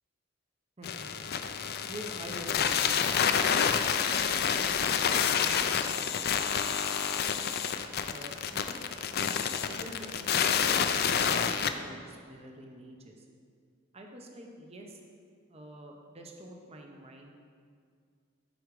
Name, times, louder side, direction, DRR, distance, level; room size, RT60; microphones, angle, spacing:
sound 1, 0.8-11.7, left 7 dB, 50° left, 0.4 m, -28 dB
voice 1, 1.9-3.7 4.1-6.1 6.4-7.3 8.1-13.2 13.9-15.0 15.5-17.4, right 1 dB, 30° right, 1 dB, 0.8 m, -47 dB
13.0 x 4.8 x 4.8 m, 2.2 s
head